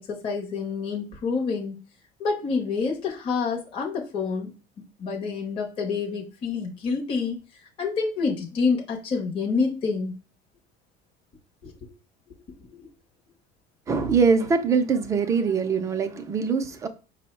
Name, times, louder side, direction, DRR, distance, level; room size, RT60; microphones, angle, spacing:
voice 1, 0.0-1.8 2.2-4.5 5.0-7.4 7.8-10.1 11.6-11.9 12.3-12.4 12.7-12.9, left 4 dB, 25° left, 0.6 m, -28 dB
voice 2, 13.9-16.9, right 5 dB, 15° right, 0.3 m, -23 dB
5.2 x 2.0 x 4.3 m
cardioid pair, 175°, 20 cm